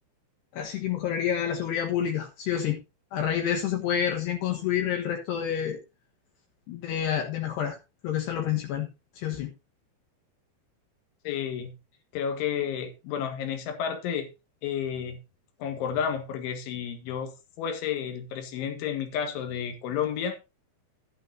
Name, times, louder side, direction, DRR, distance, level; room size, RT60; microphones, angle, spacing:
voice 1, 0.5-2.8 3.1-5.8 6.7-7.8 8.0-8.9 9.2-9.5, left 9 dB, 70° left, 3 dB, 3.3 m, -28 dB
voice 2, 11.3-11.8 12.1-14.3 14.6-15.2 15.6-20.4, left 8 dB, 90° left, 7 dB, 4.2 m, -31 dB
11.5 x 11.5 x 2.8 m, 0.26 s
omnidirectional pair, 5.3 m